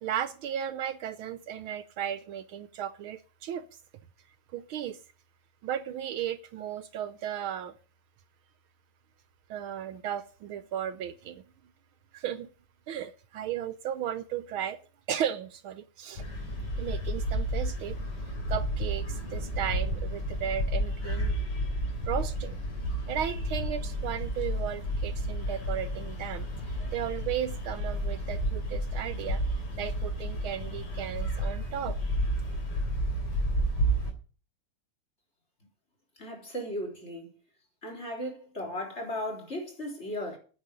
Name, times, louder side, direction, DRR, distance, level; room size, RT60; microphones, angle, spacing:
voice 1, 0.0-3.6 4.5-5.0 5.6-7.7 9.5-11.4 12.1-12.5 12.9-14.8 15.1-16.2 16.8-18.0 18.5-21.4 22.1-22.6 23.1-26.5 26.9-29.4 29.8-32.0, right 10 dB, 75° right, 1.5 m, -35 dB
sound 1, 16.2-34.1, equal, 80° left, 4.4 m, -31 dB
voice 2, 36.2-37.3 37.8-40.4, left 1 dB, 30° left, 4.2 m, -36 dB
9.6 x 7.3 x 9.0 m
omnidirectional pair, 2.4 m